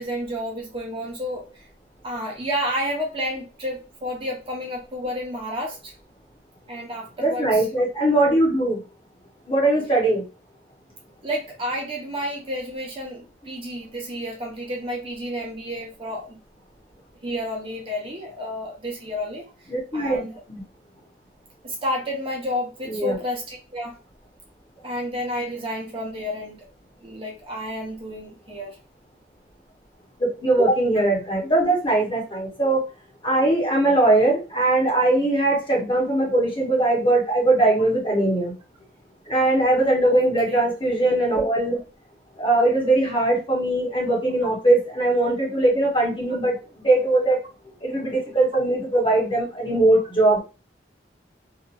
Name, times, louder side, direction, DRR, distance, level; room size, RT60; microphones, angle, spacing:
voice 1, 0.0-1.6 2.0-5.9 6.7-7.6 11.2-16.4 17.2-19.4 19.9-20.3 21.6-24.0 24.8-26.7 27.0-28.8 40.1-40.6, equal, 30° right, -1 dB, 0.8 m, -30 dB
voice 2, 7.2-8.8 9.5-10.2 19.7-20.6 22.9-23.1 30.2-32.8 33.2-38.5 39.3-41.8 42.4-46.6 46.8-47.4 47.8-50.4, right 2 dB, 25° left, -2 dB, 1.0 m, -20 dB
2.8 x 2.5 x 2.5 m, 0.31 s
head